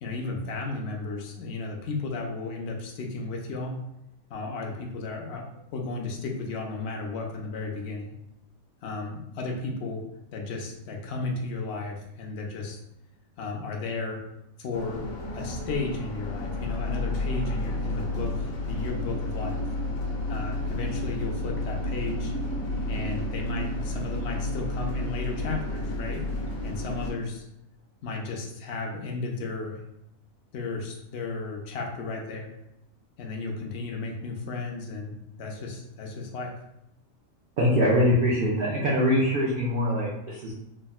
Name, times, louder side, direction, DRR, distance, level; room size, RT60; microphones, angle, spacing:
voice 1, 0.0-3.8 4.3-5.4 5.7-8.1 8.8-10.0 10.3-12.8 13.4-14.2 14.6-15.0 15.3-19.6 20.3-22.3 22.9-26.2 26.6-27.4 28.0-29.8 30.5-32.6 33.2-36.5, left 3 dB, 65° left, 0 dB, 0.7 m, -34 dB
sound 1, 14.7-27.1, left 1 dB, 85° left, 1.1 m, -31 dB
voice 2, 37.6-40.5, equal, 65° right, -4 dB, 0.5 m, -23 dB
3.5 x 2.1 x 2.3 m, 0.83 s
omnidirectional pair, 1.4 m